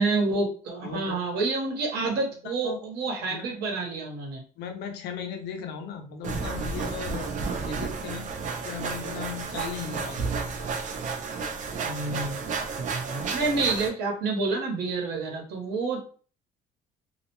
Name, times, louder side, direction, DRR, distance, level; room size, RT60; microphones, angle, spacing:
voice 1, 0.0-4.4 11.8-12.4 12.8-16.0, right 3 dB, 70° right, 0 dB, 1.0 m, -28 dB
voice 2, 0.8-1.2 2.4-2.8 3.3-3.5 4.6-7.3 7.6-10.3, left 7 dB, 80° left, 5 dB, 0.6 m, -37 dB
sound 1, 6.2-13.9, right 4 dB, 50° right, 0.5 m, -32 dB
2.3 x 2.1 x 2.9 m, 0.40 s
cardioid pair, 110°, 17 cm